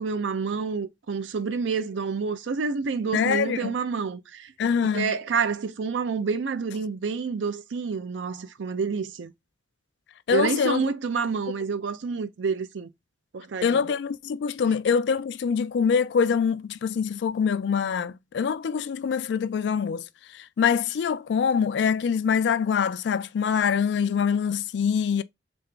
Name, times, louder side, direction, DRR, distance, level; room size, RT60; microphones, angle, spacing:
voice 1, 0.0-4.5 4.9-9.3 10.3-12.9 13.3-14.0, right 5 dB, 85° right, 0.5 m, -28 dB
voice 2, 3.1-3.7 4.6-5.1 10.3-10.8 13.6-20.0 20.3-25.2, left 6 dB, 70° left, 0.3 m, -24 dB
3.6 x 2.8 x 3.3 m
head